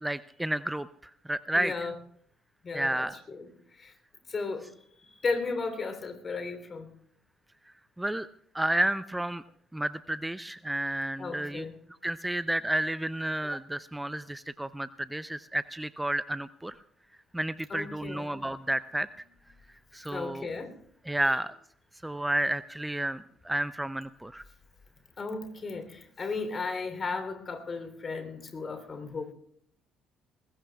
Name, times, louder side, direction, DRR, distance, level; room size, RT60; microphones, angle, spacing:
voice 1, 0.0-0.9 1.3-1.7 2.7-3.1 8.0-8.3 8.5-9.4 9.7-11.7 12.0-16.8 17.3-19.1 19.9-20.5 21.1-21.5 22.0-24.4, right 1 dB, 10° right, 15 dB, 0.5 m, -31 dB
voice 2, 1.5-1.9 2.6-3.5 3.7-3.9 4.3-4.7 5.0-6.9 11.2-11.7 17.7-18.2 20.1-20.7 21.2-21.3 25.2-29.3, left 4 dB, 40° left, 7 dB, 3.3 m, -35 dB
21.5 x 20.5 x 2.3 m, 0.64 s
hypercardioid pair, 55°, 0 cm